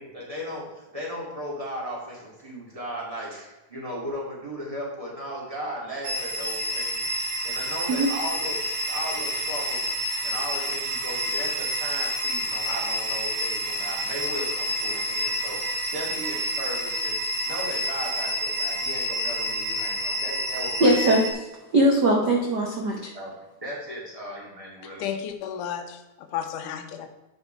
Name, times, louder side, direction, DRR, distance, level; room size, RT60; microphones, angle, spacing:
voice 1, 0.0-7.0 7.4-8.6 8.9-9.8 10.2-17.2 17.5-21.2 23.1-23.3 23.6-25.0, equal, 10° right, -4 dB, 2.1 m, -36 dB
sound 1, 6.0-21.3, equal, 60° right, 2.1 m, -29 dB
voice 2, 20.8-21.2 21.7-23.1, right 1 dB, 90° right, 0 dB, 0.9 m, -20 dB
voice 3, 25.0-27.1, left 9 dB, 90° left, 6 dB, 2.3 m, -33 dB
9.7 x 5.4 x 4.5 m, 1.1 s
omnidirectional pair, 3.6 m